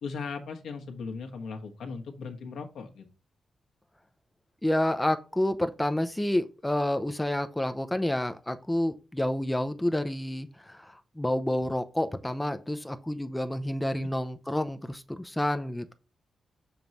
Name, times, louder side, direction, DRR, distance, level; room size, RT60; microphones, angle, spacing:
voice 1, 0.0-3.0 14.0-14.1, left 5 dB, 75° left, 1.2 m, -38 dB
voice 2, 4.6-15.9, left 1 dB, 5° left, 0.5 m, -29 dB
7.0 x 3.1 x 5.3 m
wide cardioid pair, 180°, 0 cm